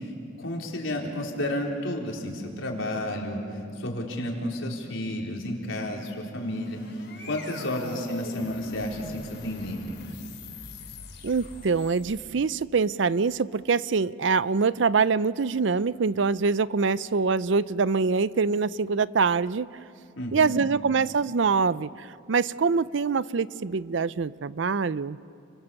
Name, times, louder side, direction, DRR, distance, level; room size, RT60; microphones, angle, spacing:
voice 1, 0.4-3.4 3.8-6.8 7.3-9.9 20.2-20.7, left 1 dB, 85° left, 0 dB, 4.1 m, -31 dB
sound 1, 6.2-12.5, left 3 dB, 60° left, 4.5 m, -43 dB
voice 2, 11.2-19.7 20.3-25.2, right 5 dB, 70° right, 17 dB, 0.5 m, -24 dB
30.0 x 24.0 x 7.1 m, 2.4 s
head